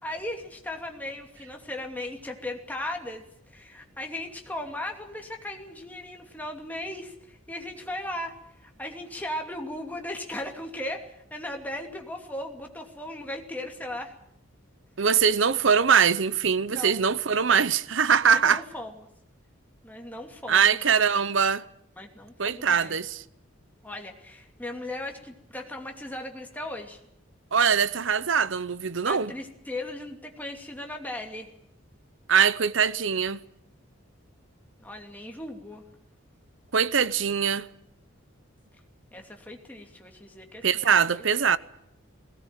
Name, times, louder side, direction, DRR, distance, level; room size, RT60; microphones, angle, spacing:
voice 1, 0.0-8.4 8.6-14.1 16.7-17.0 18.3-18.9 19.8-20.8 22.0-22.9 23.8-27.0 29.1-31.5 34.8-35.8 39.1-41.2, left 1 dB, 10° left, 2.6 m, -37 dB
voice 2, 15.0-18.6 20.5-21.6 22.4-23.2 27.5-29.3 32.3-33.4 36.7-37.7 40.6-41.6, right 6 dB, 65° right, 0.8 m, -22 dB
20.0 x 18.5 x 9.2 m
head